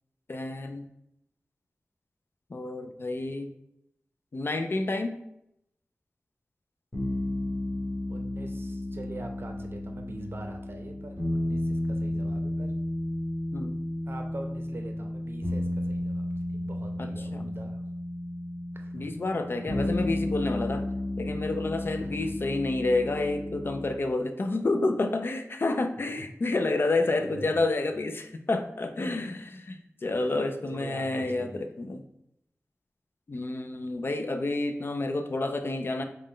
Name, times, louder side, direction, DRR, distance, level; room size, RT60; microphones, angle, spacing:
voice 1, 0.3-0.9 2.5-3.5 4.3-5.2 13.5-13.8 17.0-17.5 18.9-20.8 21.2-32.0 33.3-36.0, left 2 dB, 50° left, 6 dB, 0.4 m, -29 dB
sound 1, 6.9-23.9, left 1 dB, 20° left, 1.3 m, -32 dB
voice 2, 8.1-12.7 14.1-16.3 16.5-17.8 18.7-19.1 22.0-22.3 27.2-27.6 30.2-30.4 30.7-31.6, right 2 dB, 55° right, 4 dB, 0.5 m, -43 dB
4.9 x 2.2 x 3.6 m, 0.80 s
wide cardioid pair, 85°, 5 cm